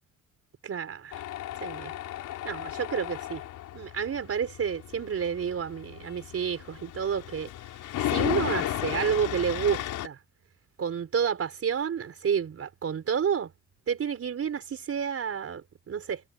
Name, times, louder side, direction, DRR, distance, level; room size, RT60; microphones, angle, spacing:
voice 1, 0.6-1.1 1.6-1.9 2.4-3.4 3.7-7.5 8.0-10.2 10.8-13.5 13.9-16.2, right 7 dB, 50° right, 4.6 m, -30 dB
Tools, 1.1-10.1, left 13 dB, 85° left, 4.2 m, -34 dB
cardioid pair, 90°, 30 cm